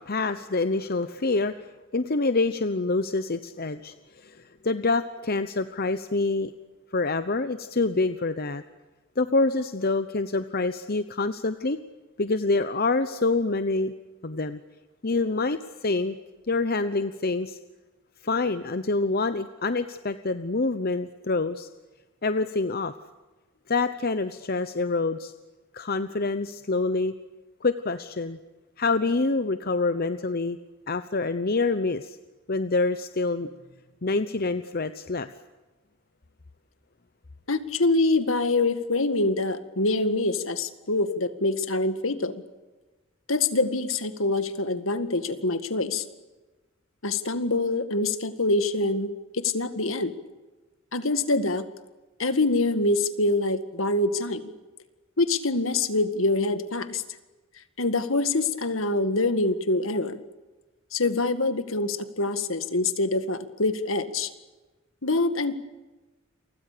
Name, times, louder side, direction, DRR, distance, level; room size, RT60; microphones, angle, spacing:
voice 1, 0.0-1.7 1.9-6.5 6.9-8.6 9.2-11.8 12.2-13.9 14.2-14.6 15.0-16.1 16.5-17.6 18.2-21.7 22.2-22.9 23.7-25.3 25.7-27.1 27.6-28.4 28.8-30.6 30.9-32.2 32.5-33.5 34.0-35.3, left 3 dB, 45° left, 11 dB, 0.9 m, -26 dB
voice 2, 37.5-42.3 43.3-46.0 47.0-50.1 50.9-51.7 52.2-54.5 55.2-57.0 57.8-60.2 60.9-64.3 65.0-65.5, left 2 dB, 70° left, 10 dB, 2.0 m, -25 dB
30.0 x 25.0 x 6.9 m, 1.2 s
head